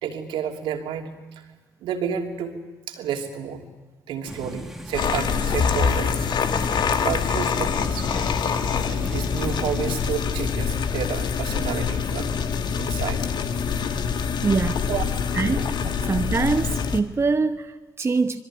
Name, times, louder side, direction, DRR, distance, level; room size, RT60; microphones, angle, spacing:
voice 1, 0.0-1.1 1.8-2.5 2.9-3.6 4.1-6.3 7.0-8.1 8.9-12.3 12.8-13.3 14.9-15.0, right 8 dB, 65° right, 2.9 m, -30 dB
sound 1, 4.3-10.1, right 1 dB, 5° right, 2.3 m, -38 dB
sound 2, 4.9-17.0, left 6 dB, 50° left, 1.7 m, -25 dB
voice 2, 14.4-14.8 15.3-15.7 16.1-18.4, right 4 dB, 25° right, 0.9 m, -24 dB
25.5 x 21.5 x 9.2 m
figure-of-eight pair, 45°, 10 cm